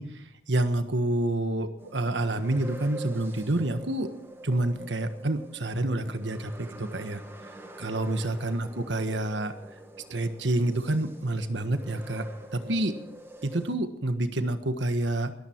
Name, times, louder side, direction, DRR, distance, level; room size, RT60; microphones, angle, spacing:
voice 1, 0.0-4.1 4.4-7.2 7.8-9.5 10.1-12.9 13.4-15.3, right 1 dB, 75° right, 9 dB, 1.5 m, -28 dB
sound 1, 1.8-13.8, right 2 dB, 15° right, 2.0 m, -45 dB
22.5 x 14.0 x 4.6 m, 0.75 s
head